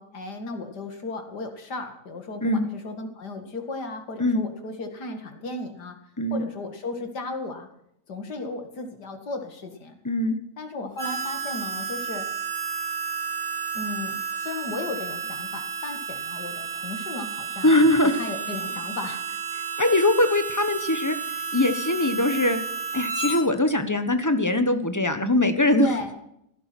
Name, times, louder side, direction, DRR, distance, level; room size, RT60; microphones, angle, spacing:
voice 1, 0.0-6.0 6.3-7.7 8.1-10.0 10.6-12.3 13.7-17.8 18.1-19.2 25.7-26.1, left 3 dB, 90° left, 6 dB, 2.7 m, -35 dB
voice 2, 10.0-10.4 17.6-18.1 19.8-21.2 21.5-22.6 22.9-25.9, left 1 dB, 10° left, 9 dB, 1.1 m, -21 dB
Harmonica, 11.0-23.4, right 6 dB, 35° right, 6.7 m, -32 dB
15.5 x 12.0 x 6.1 m, 0.74 s
omnidirectional pair, 1.7 m